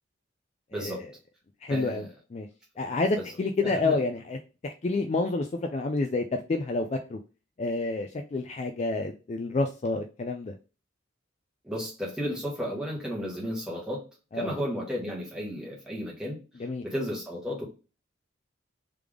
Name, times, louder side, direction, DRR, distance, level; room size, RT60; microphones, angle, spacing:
voice 1, 0.7-1.1 1.7-2.1 3.1-3.2 3.6-4.0 11.6-14.0 14.3-16.4 16.8-17.6, equal, 5° right, -4 dB, 1.3 m, -33 dB
voice 2, 1.6-2.0 2.3-2.5 2.8-4.4 4.6-7.2 7.6-10.5 14.3-14.5 16.6-16.8, left 3 dB, 35° left, 5 dB, 0.3 m, -29 dB
3.4 x 3.3 x 3.5 m, 0.33 s
head